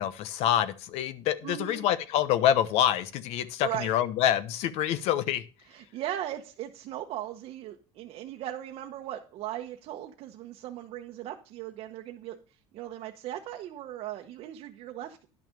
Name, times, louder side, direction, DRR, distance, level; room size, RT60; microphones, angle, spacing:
voice 1, 0.0-5.4, left 11 dB, 65° left, 15 dB, 1.0 m, -26 dB
voice 2, 1.4-1.8 3.6-3.9 5.7-12.4 12.7-15.3, right 12 dB, 55° right, 3 dB, 1.0 m, -38 dB
11.0 x 6.2 x 5.2 m, 0.36 s
cardioid pair, 130°, 12 cm